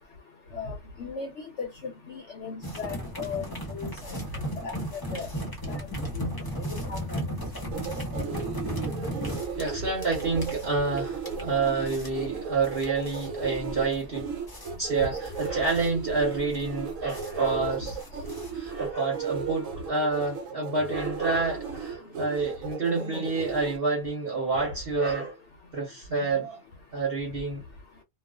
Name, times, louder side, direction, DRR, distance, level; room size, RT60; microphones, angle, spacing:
voice 1, 0.5-1.3 1.6-5.3 5.7-5.9 6.1-6.3 6.9-7.0 7.3-7.7, left 4 dB, 65° left, 0.9 m, -37 dB
sound 1, 2.6-18.9, equal, 20° left, 0.7 m, -36 dB
sound 2, 7.7-23.8, right 5 dB, 80° right, 1.0 m, -36 dB
voice 2, 9.6-14.3 14.8-18.0 18.5-25.4 25.7-26.6 26.9-27.6, right 4 dB, 50° right, 0.9 m, -28 dB
2.3 x 2.3 x 2.2 m
omnidirectional pair, 1.4 m